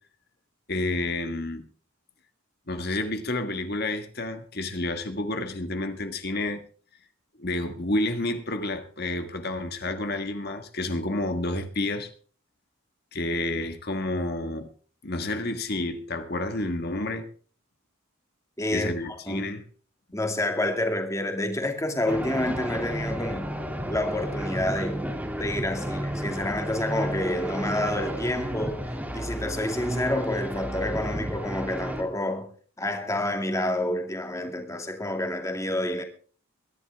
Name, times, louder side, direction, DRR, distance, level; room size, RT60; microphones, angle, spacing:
voice 1, 0.7-1.7 2.7-6.6 7.4-12.1 13.1-14.7 15.0-17.3 18.7-19.6, left 2 dB, 50° left, 1.6 m, -30 dB
voice 2, 18.6-19.5 20.1-23.6 23.9-25.1 25.4-32.5 32.8-36.0, left 1 dB, 15° left, 2.3 m, -28 dB
sound 1, 22.1-32.0, equal, 10° right, 2.4 m, -32 dB
22.5 x 11.0 x 3.5 m
head